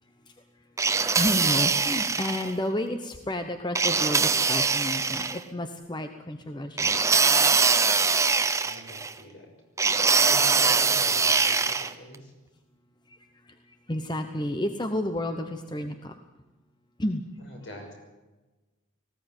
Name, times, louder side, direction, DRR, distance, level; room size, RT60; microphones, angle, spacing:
sound 1, 0.8-2.5 3.8-5.4 6.8-9.1 9.8-11.9, right 5 dB, 15° right, 0.7 m, -23 dB
voice 1, 1.1-7.2 13.1-13.2 13.4-16.2 17.0-17.2, left 1 dB, 20° left, 7 dB, 0.9 m, -31 dB
voice 2, 8.6-9.5 10.2-12.3 17.4-17.9, equal, 60° left, 3 dB, 6.1 m, -44 dB
19.5 x 16.0 x 9.1 m, 1.2 s
head